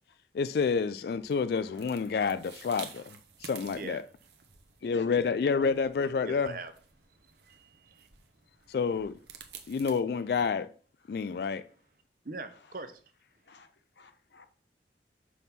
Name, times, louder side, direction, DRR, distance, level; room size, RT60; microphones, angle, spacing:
voice 1, 0.3-4.0 4.8-6.5 8.7-9.2 9.7-10.7 11.1-11.6, left 5 dB, 60° left, 0.3 m, -29 dB
sound 1, 1.0-10.0, right 7 dB, 75° right, 1.0 m, -52 dB
voice 2, 1.6-2.1 4.8-5.8 8.6-8.8 11.1-11.4 12.6-12.7 13.4-13.7 13.9-14.5, left 3 dB, 85° left, 1.1 m, -51 dB
voice 3, 3.4-4.0 6.2-6.7 7.4-8.1 11.4-11.5 12.2-13.0, right 3 dB, 50° right, 0.8 m, -42 dB
6.1 x 3.6 x 5.8 m
head